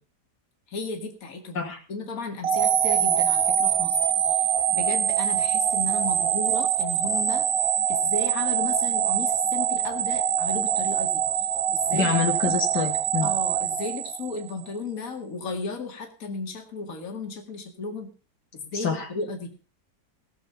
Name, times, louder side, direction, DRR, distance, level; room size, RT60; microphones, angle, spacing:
voice 1, 0.7-7.5 7.9-12.1 13.2-18.1 18.5-19.5, left 4 dB, 55° left, 4 dB, 2.5 m, -34 dB
sound 1, 2.4-14.6, right 8 dB, 60° right, 1.2 m, -24 dB
voice 2, 11.9-13.3 18.7-19.1, left 6 dB, 80° left, 3 dB, 2.6 m, -26 dB
18.5 x 7.1 x 5.7 m, 0.37 s
omnidirectional pair, 1.8 m